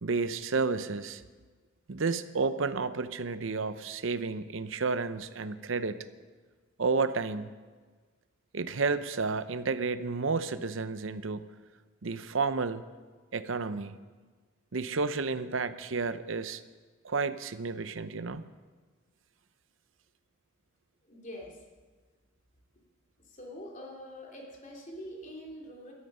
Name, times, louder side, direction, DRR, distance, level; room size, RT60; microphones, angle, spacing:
voice 1, 0.0-1.2 1.9-6.0 6.8-7.5 8.5-11.5 12.0-12.8 13.3-13.9 14.7-16.6 17.0-18.4, right 4 dB, 65° right, 13 dB, 0.7 m, -31 dB
voice 2, 21.0-21.6 23.2-25.9, equal, 40° left, -1 dB, 3.1 m, -44 dB
17.5 x 13.0 x 5.5 m, 1.4 s
head